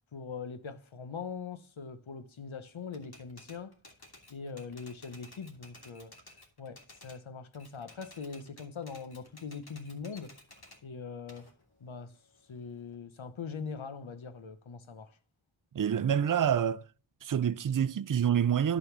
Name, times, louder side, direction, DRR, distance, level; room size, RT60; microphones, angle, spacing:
voice 1, 0.1-3.7 4.3-6.2 6.6-10.3 10.8-11.5 11.8-12.1 12.5-15.2, left 5 dB, 85° left, 1.0 m, -42 dB
Typewriter, 2.9-7.2 7.5-10.8 11.3-12.9, left 2 dB, 55° left, 2.6 m, -55 dB
voice 2, 15.7-16.8 17.2-18.8, right 8 dB, 45° right, 0.5 m, -27 dB
11.0 x 4.0 x 7.2 m
wide cardioid pair, 45°, 46 cm